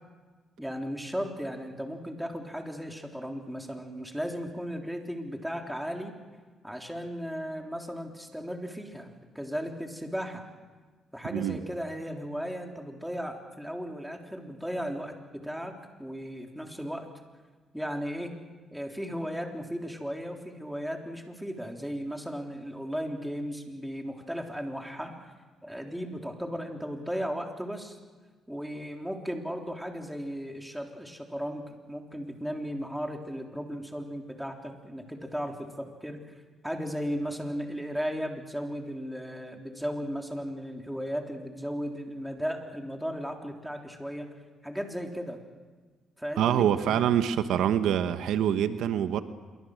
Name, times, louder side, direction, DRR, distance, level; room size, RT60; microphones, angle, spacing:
voice 1, 0.6-6.1 6.6-9.1 9.4-10.4 11.1-17.1 17.7-18.3 18.7-25.3 25.6-28.0 28.5-36.2 36.6-44.3 44.6-45.4 46.2-47.1, equal, ahead, 2 dB, 3.6 m, -36 dB
voice 2, 46.4-49.2, right 10 dB, 85° right, 10 dB, 1.1 m, -25 dB
27.0 x 23.5 x 6.6 m, 1.4 s
cardioid pair, 90°, 0 cm